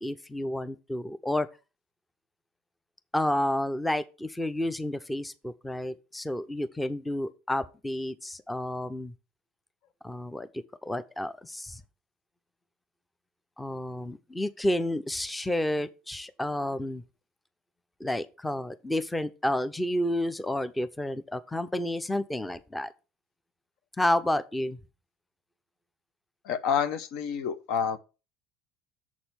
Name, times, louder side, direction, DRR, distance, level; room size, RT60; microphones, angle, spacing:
voice 1, 0.0-1.5 3.1-9.1 10.0-10.5 10.8-11.8 13.6-17.0 18.0-22.9 24.0-24.8, left 1 dB, 10° left, 0.7 m, -30 dB
voice 2, 26.4-28.0, left 7 dB, 65° left, 0.9 m, -28 dB
7.2 x 4.3 x 6.8 m
hypercardioid pair, 75°, 0 cm